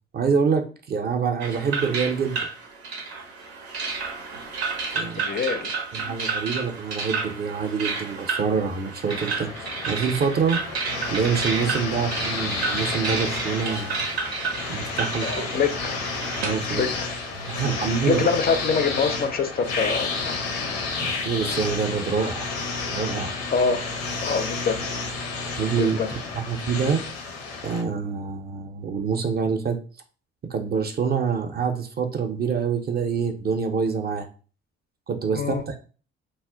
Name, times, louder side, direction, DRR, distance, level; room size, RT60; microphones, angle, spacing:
voice 1, 0.1-2.4 4.9-5.2 5.9-10.6 11.1-14.0 14.7-15.5 16.4-16.8 17.4-18.3 21.0-22.5 22.9-23.3 25.6-27.0 27.6-29.8 30.4-34.3 35.1-35.8, right 6 dB, 30° right, 6 dB, 0.4 m, -26 dB
sound 1, 1.4-18.4, right 4 dB, 90° right, 0.5 m, -31 dB
voice 2, 5.2-6.1 11.9-12.0 15.1-16.0 16.7-17.1 17.8-20.7 23.5-23.9 24.2-24.8 25.8-26.1 35.3-35.6, left 5 dB, 30° left, 8 dB, 0.4 m, -26 dB
sound 2, 9.1-27.8, left 4 dB, 75° left, 0.6 m, -31 dB
2.1 x 2.0 x 3.7 m, 0.38 s
hypercardioid pair, 50°, 31 cm